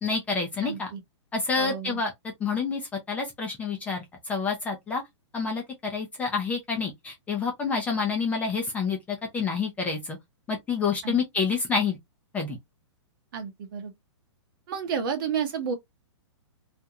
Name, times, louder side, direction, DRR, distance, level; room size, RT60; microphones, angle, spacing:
voice 1, 0.0-0.9 1.3-2.1 2.4-2.8 3.1-5.0 5.3-10.2 10.5-12.0 12.3-12.6, left 5 dB, 10° left, 0.5 m, -28 dB
voice 2, 0.6-1.0 1.6-2.0 11.0-11.1 13.3-13.9 14.7-15.8, right 7 dB, 45° right, 0.9 m, -31 dB
2.5 x 2.1 x 2.9 m
hypercardioid pair, 155°, 15 cm